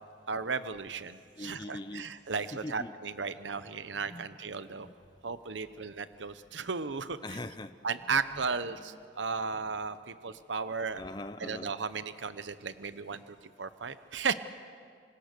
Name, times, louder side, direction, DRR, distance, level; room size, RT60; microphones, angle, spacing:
voice 1, 0.3-4.9 5.2-7.2 7.8-11.0 11.4-14.3, right 5 dB, 90° right, 12 dB, 0.8 m, -35 dB
voice 2, 1.4-3.0 3.2-3.3 4.0-5.0 5.3-5.8 6.6-6.7 7.2-9.1 10.9-11.7, left 2 dB, 25° left, 10 dB, 0.6 m, -44 dB
27.0 x 25.5 x 6.8 m, 2.1 s
head